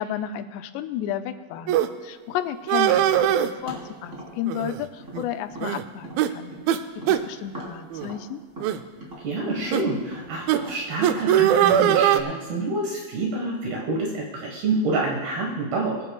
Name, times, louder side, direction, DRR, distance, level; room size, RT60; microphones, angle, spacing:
voice 1, 0.0-6.5 7.0-8.4, left 11 dB, 85° left, 9 dB, 2.8 m, -32 dB
sound 1, 1.7-1.9 2.7-3.5 4.5-4.8 5.1-5.2 5.6-5.8 6.2-6.3 6.7-6.8 7.1-7.2 7.9-8.1 8.6-8.8 9.7-9.8 10.5-10.6 11.0-12.2, right 11 dB, 90° right, 2.0 m, -20 dB
Tap, 3.0-6.7 7.0-11.3, right 1 dB, 20° right, 3.4 m, -41 dB
voice 2, 9.2-16.1, right 2 dB, 70° right, -2 dB, 3.4 m, -27 dB
24.0 x 11.0 x 2.3 m, 1.3 s
omnidirectional pair, 4.8 m